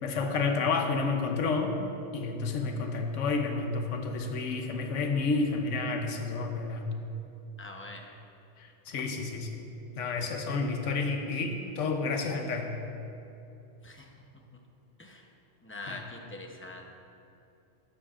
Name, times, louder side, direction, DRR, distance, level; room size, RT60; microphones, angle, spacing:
voice 1, 0.0-1.8 2.1-6.9 8.6-9.6 10.0-12.8 15.9-16.0, left 4 dB, 85° left, 4 dB, 1.2 m, -30 dB
voice 2, 7.6-8.0 13.8-14.1 15.0-15.2 15.6-16.9, left 2 dB, 15° left, 1 dB, 0.6 m, -43 dB
13.0 x 9.1 x 2.5 m, 2.8 s
omnidirectional pair, 1.2 m